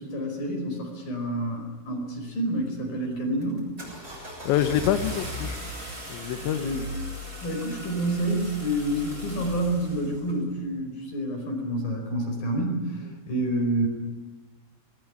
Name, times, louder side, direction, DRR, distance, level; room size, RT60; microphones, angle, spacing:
voice 1, 0.0-3.7 6.6-6.9 7.4-13.9, right 1 dB, 50° left, 3 dB, 6.6 m, -28 dB
Car / Engine starting, 2.6-3.0 3.4-10.4, equal, 15° right, 7.2 m, -37 dB
voice 2, 4.1-5.6 6.1-6.7, left 10 dB, 75° left, 8 dB, 3.2 m, -27 dB
21.5 x 20.0 x 9.6 m, 1.2 s
omnidirectional pair, 5.5 m